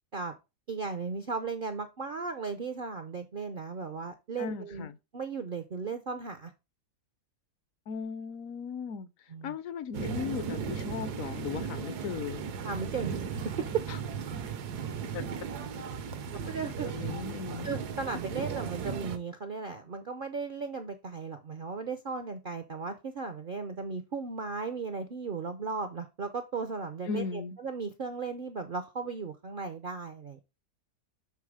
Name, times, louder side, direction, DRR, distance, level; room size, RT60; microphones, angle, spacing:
voice 1, 0.7-4.9 5.1-6.5 9.3-9.5 12.6-13.8 16.2-16.9 17.6-30.4, right 5 dB, 60° right, 0.5 m, -36 dB
voice 2, 4.4-5.0 7.9-12.4 13.9-14.0 15.1-15.3 16.8-17.7 27.1-27.6, left 6 dB, 65° left, 0.9 m, -37 dB
sound 1, 9.9-19.2, right 6 dB, 80° right, 1.4 m, -36 dB
7.2 x 3.9 x 4.8 m
omnidirectional pair, 1.7 m